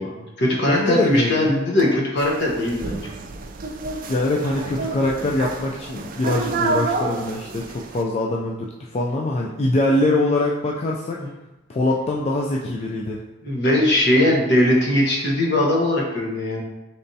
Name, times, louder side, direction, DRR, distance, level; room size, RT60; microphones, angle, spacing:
voice 1, 0.0-3.0 11.2-11.3 13.4-16.6, left 1 dB, 65° left, -2 dB, 0.9 m, -20 dB
voice 2, 0.7-1.6 4.1-11.2 11.7-13.2, left 2 dB, 35° left, -2 dB, 0.3 m, -23 dB
sound 1, 2.2-8.0, right 3 dB, 45° right, 0.3 m, -29 dB
4.0 x 3.3 x 2.7 m, 0.99 s
head